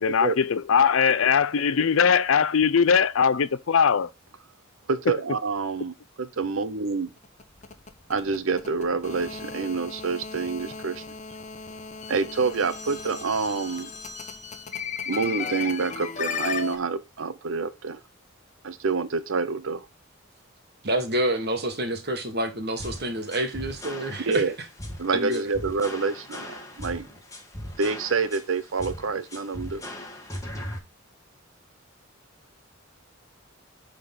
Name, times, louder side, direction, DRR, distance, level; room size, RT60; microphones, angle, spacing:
voice 1, 0.0-4.1, left 6 dB, 80° left, 0.5 m, -20 dB
voice 2, 4.9-7.1 8.1-11.0 12.1-13.9 15.1-18.0 18.6-19.9 24.2-24.5 25.0-27.1 27.8-29.8, right 4 dB, 75° right, 0.7 m, -27 dB
sound 1, 7.2-16.8, left 5 dB, 35° left, 0.9 m, -35 dB
voice 3, 20.8-24.4 25.1-25.5, right 1 dB, 50° right, 1.7 m, -28 dB
sound 2, 22.8-30.8, left 1 dB, 15° left, 1.6 m, -38 dB
9.7 x 3.9 x 3.7 m
head